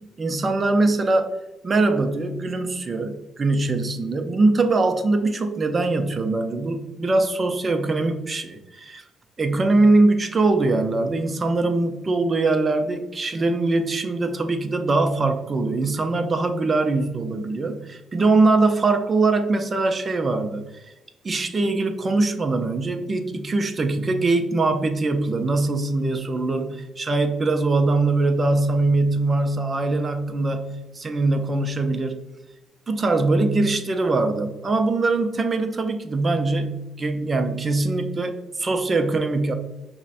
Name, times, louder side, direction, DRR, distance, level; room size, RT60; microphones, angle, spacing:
voice 1, 0.0-1.3 1.6-9.0 9.4-20.6 21.2-32.2 32.9-39.5, right 3 dB, 35° right, 6 dB, 0.5 m, -22 dB
5.5 x 2.1 x 2.5 m, 1.0 s
cardioid pair, 90°, 0 cm